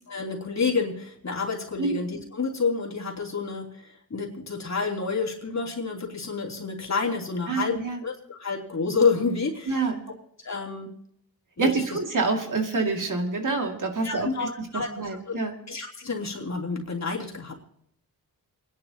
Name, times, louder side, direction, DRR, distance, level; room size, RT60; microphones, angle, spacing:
voice 1, 0.1-9.9 10.4-10.9 11.6-12.0 14.0-14.9 15.3-15.4 15.7-17.6, left 4 dB, 50° left, -1 dB, 3.2 m, -29 dB
voice 2, 7.5-8.0 9.7-10.0 11.6-14.5 14.7-15.5, right 3 dB, 55° right, 2 dB, 2.4 m, -27 dB
28.5 x 10.5 x 2.9 m, 0.73 s
wide cardioid pair, 75°, 36 cm